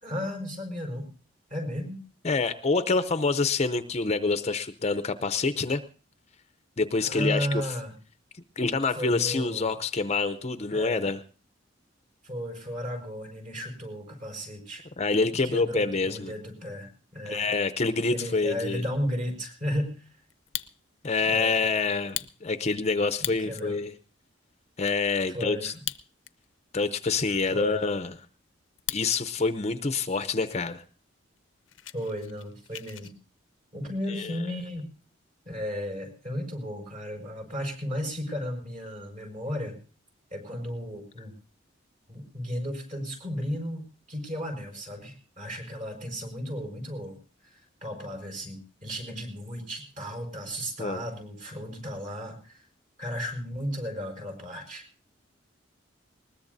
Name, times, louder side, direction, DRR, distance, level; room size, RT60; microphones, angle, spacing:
voice 1, 0.0-1.1 1.5-2.0 7.0-8.0 8.9-9.8 10.7-11.1 12.2-14.8 15.4-17.5 18.1-20.1 21.2-21.6 23.2-23.8 25.3-25.8 27.5-27.8 31.9-33.1 33.7-34.9 35.5-39.8 40.3-41.3 42.1-47.2 47.4-52.7 53.0-54.9, equal, 40° right, 2 dB, 5.3 m, -34 dB
voice 2, 2.2-5.8 6.8-7.6 8.6-11.2 15.0-16.3 17.3-18.8 21.0-23.9 24.8-25.7 26.7-28.1 28.9-30.8 34.1-34.3 50.8-51.0, left 4 dB, 35° left, 12 dB, 0.6 m, -26 dB
Fire, 20.3-21.1 21.5-21.6 22.0-23.7 24.2-24.3 24.5-25.0 25.7-26.5 26.8-26.9 27.5-29.2 29.5-30.0 30.5-30.6 30.9-31.1 31.4-33.1, left 14 dB, 80° left, 0.6 m, -38 dB
20.5 x 20.0 x 2.7 m, 0.37 s
head